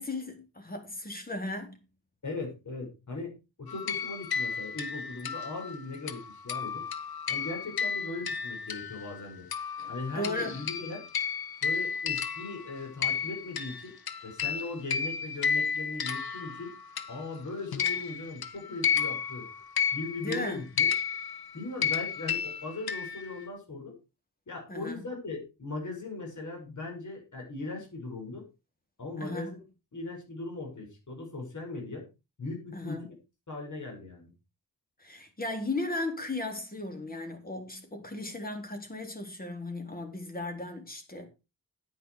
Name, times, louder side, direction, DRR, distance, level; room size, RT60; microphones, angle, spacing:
voice 1, 0.0-1.8 10.2-10.6 20.2-20.6 24.7-25.0 29.2-29.6 32.7-33.0 35.0-41.3, left 2 dB, 25° left, 3.6 m, -36 dB
voice 2, 2.2-6.8 7.3-9.5 9.9-11.0 11.6-13.9 14.2-16.7 17.1-19.5 19.9-20.9 21.5-23.9 24.5-28.4 29.0-29.6 29.9-32.1 32.4-33.1 33.5-34.3, left 2 dB, 55° left, 6.3 m, -39 dB
sound 1, 3.7-9.2 9.5-17.4 17.7-23.4, left 7 dB, 80° left, 1.1 m, -32 dB
10.0 x 9.8 x 4.9 m
wide cardioid pair, 105°, 36 cm